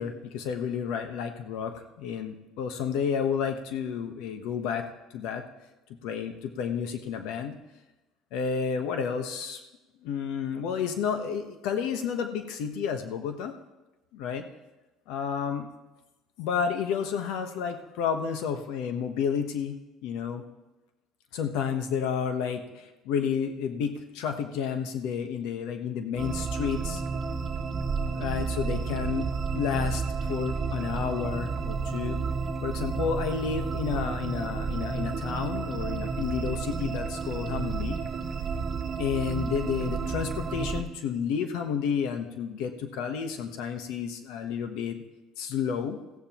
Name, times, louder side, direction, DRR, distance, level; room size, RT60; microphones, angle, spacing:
voice 1, 0.0-4.8 5.1-5.4 6.0-7.6 8.3-9.6 10.0-13.5 14.1-14.4 15.1-15.7 16.4-20.4 21.3-27.0 28.1-29.3 29.5-32.2 32.6-38.0 39.0-45.0 45.4-46.0, left 7 dB, 75° left, 6 dB, 1.1 m, -31 dB
sound 1, 26.2-40.8, right 5 dB, 30° right, 1.6 m, -31 dB
20.5 x 15.5 x 3.0 m, 1.1 s
cardioid pair, 130°, 0 cm